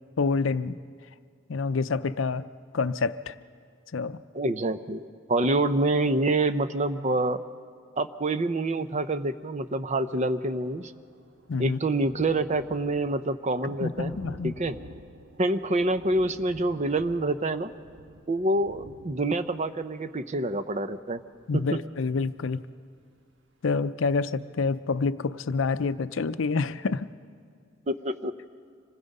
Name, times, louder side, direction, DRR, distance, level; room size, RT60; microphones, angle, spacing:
voice 1, 0.2-0.8 1.5-2.5 2.7-3.4 3.9-4.2 11.5-11.8 13.6-14.5 21.5-22.6 23.6-27.1, left 4 dB, 70° left, 13 dB, 0.5 m, -27 dB
voice 2, 4.3-7.4 8.0-10.9 11.6-14.2 14.4-14.8 15.4-17.7 18.3-21.2 21.5-21.8 27.9-28.3, right 2 dB, 35° right, 11 dB, 0.7 m, -27 dB
Thunder, 9.6-9.7 9.9-22.5 23.0-23.1 23.4-23.5, right 1 dB, 65° right, 1.3 m, -50 dB
26.0 x 20.0 x 5.4 m, 2.1 s
head